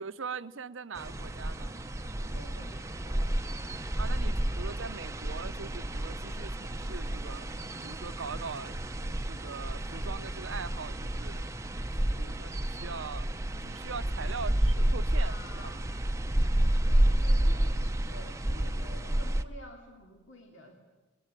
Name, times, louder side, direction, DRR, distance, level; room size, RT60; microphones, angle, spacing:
voice 1, 0.0-1.8 4.0-7.5 7.8-11.5 11.9-13.3 13.6-15.7, right 5 dB, 65° right, 13 dB, 0.8 m, -42 dB
sound 1, 1.0-19.4, right 1 dB, 15° right, 0.8 m, -30 dB
voice 2, 2.2-3.5 15.2-15.8 16.9-20.7, left 1 dB, 60° left, 3 dB, 2.8 m, -50 dB
25.0 x 21.0 x 9.1 m, 1.1 s
head